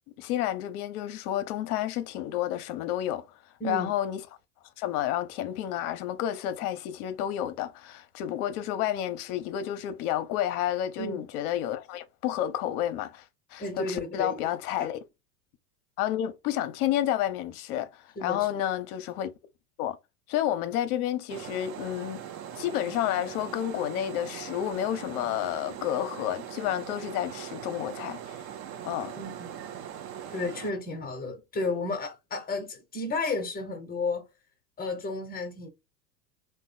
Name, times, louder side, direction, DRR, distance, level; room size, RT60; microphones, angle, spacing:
voice 1, 0.2-3.2 3.6-4.2 4.8-13.2 13.5-15.0 16.0-19.3 19.8-20.0 20.3-22.2 22.5-28.4 28.8-29.2, left 11 dB, 60° left, 0.7 m, -30 dB
voice 2, 3.6-3.9 11.0-11.2 13.6-14.5 18.2-18.5 29.2-29.6 30.3-34.3 34.8-35.7, left 3 dB, 20° left, 0.8 m, -32 dB
sound 1, 21.3-30.7, right 9 dB, 30° right, 0.4 m, -41 dB
2.9 x 2.2 x 2.6 m
hypercardioid pair, 100°, 50 cm